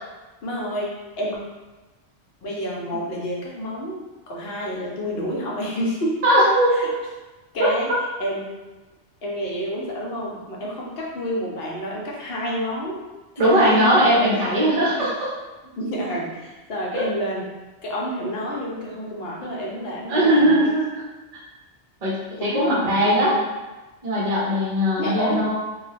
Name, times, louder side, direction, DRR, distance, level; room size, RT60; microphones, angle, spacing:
voice 1, 0.4-1.4 2.4-6.2 6.7-6.9 7.5-7.9 8.2-8.5 9.2-13.0 13.4-15.1 15.8-17.5 17.8-20.7 22.4-23.4 25.0-25.5, equal, 65° left, -3 dB, 0.9 m, -29 dB
voice 2, 6.2-6.9 7.6-7.7 13.4-15.1 17.0-17.1 20.1-20.9 22.0-23.3 24.0-25.5, equal, 40° right, -6 dB, 0.7 m, -19 dB
2.3 x 2.2 x 3.2 m, 1.1 s
omnidirectional pair, 1.1 m